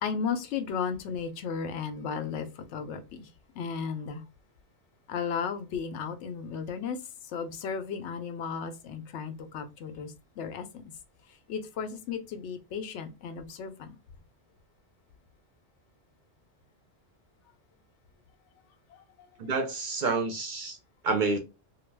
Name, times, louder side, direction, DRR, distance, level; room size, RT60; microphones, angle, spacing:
voice 1, 0.0-3.3 3.5-4.2 5.1-7.0 7.3-10.9 11.5-13.9 18.9-19.3, left 6 dB, 85° left, 0.9 m, -35 dB
voice 2, 19.4-20.8 21.0-21.4, right 3 dB, 55° right, 0.6 m, -28 dB
2.3 x 2.2 x 3.2 m
omnidirectional pair, 1.1 m